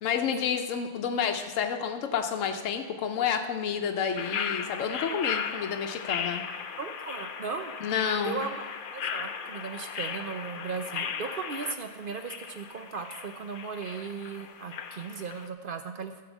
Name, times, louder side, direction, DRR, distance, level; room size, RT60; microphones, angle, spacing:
voice 1, 0.0-6.4 7.8-8.4, left 7 dB, 80° left, 5 dB, 1.1 m, -30 dB
sound 1, 4.2-15.5, left 7 dB, 55° left, 0.7 m, -36 dB
voice 2, 6.8-7.7 8.2-8.6 8.9-16.2, right 5 dB, 55° right, 7 dB, 0.7 m, -37 dB
13.5 x 4.8 x 7.1 m, 1.4 s
omnidirectional pair, 1.3 m